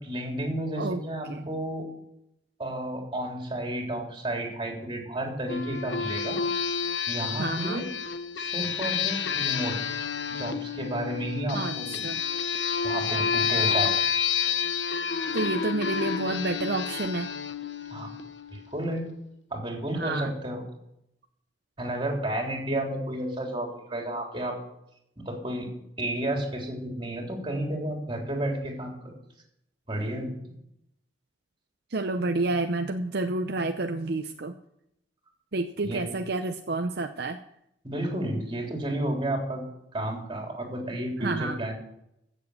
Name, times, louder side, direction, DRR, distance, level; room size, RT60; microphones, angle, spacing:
voice 1, 0.0-1.9 2.6-6.4 7.1-7.9 8.4-9.8 10.3-12.0 12.8-14.0 15.4-15.5 17.9-18.1 18.5-19.0 19.5-20.6 21.8-24.6 25.2-25.7 26.0-29.1 29.9-30.3 35.8-36.1 37.8-39.6 39.9-41.7, right 1 dB, 30° right, 0 dB, 3.6 m, -31 dB
sound 1, 5.5-18.7, left 7 dB, 75° left, 0.8 m, -29 dB
voice 2, 7.4-7.8 11.5-12.2 15.3-17.3 19.9-20.3 31.9-34.5 35.5-37.4 41.2-41.6, right 2 dB, 60° right, 6 dB, 0.7 m, -29 dB
15.5 x 7.5 x 6.5 m, 0.79 s
head